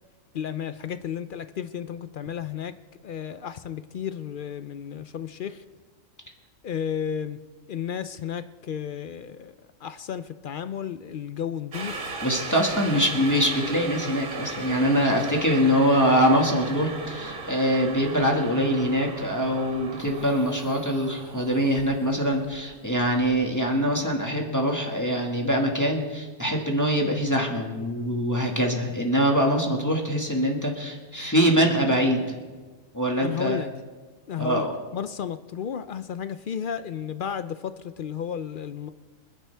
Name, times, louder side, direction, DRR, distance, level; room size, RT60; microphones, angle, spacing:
voice 1, 0.3-2.7 3.0-5.6 6.6-7.4 7.7-9.6 9.8-12.0 33.2-33.7 34.3-34.7 34.9-38.9, left 8 dB, 60° left, 12 dB, 0.5 m, -33 dB
sound 1, 11.7-23.8 24.1-24.2, right 3 dB, 75° right, 1.8 m, -37 dB
voice 2, 12.2-32.4 32.9-33.6 34.4-34.7, equal, 15° left, 0 dB, 1.7 m, -23 dB
26.0 x 10.5 x 3.4 m, 1.3 s
omnidirectional pair, 1.4 m